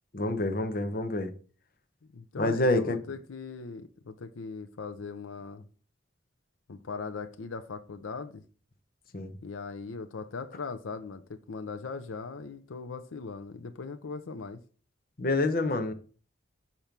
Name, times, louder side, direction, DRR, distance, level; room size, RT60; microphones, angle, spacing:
voice 1, 0.1-1.3 2.4-3.0 9.1-9.3 15.2-15.9, left 2 dB, 45° left, 0.9 m, -27 dB
voice 2, 2.1-5.7 6.7-8.4 9.4-14.6, left 4 dB, 85° left, 0.6 m, -39 dB
5.2 x 4.4 x 5.8 m
head